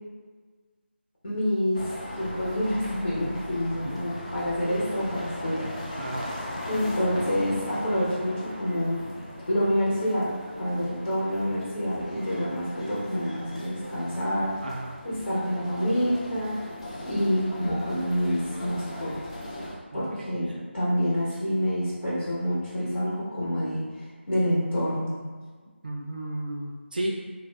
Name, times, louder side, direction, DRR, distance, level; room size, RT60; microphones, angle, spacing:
voice 1, 1.2-1.9 2.2-5.7 6.7-9.0 9.5-10.3 10.6-14.7 15.0-16.6 17.0-19.1 19.9-23.8 24.3-25.2, equal, 65° left, -8 dB, 1.0 m, -27 dB
sound 1, 1.7-19.7, left 1 dB, 30° left, 0.4 m, -38 dB
voice 2, 6.0-6.3 14.6-14.9 19.9-20.3 25.8-27.1, right 1 dB, 45° right, -2 dB, 0.4 m, -33 dB
2.5 x 2.5 x 2.3 m, 1.5 s
figure-of-eight pair, 175°, 7 cm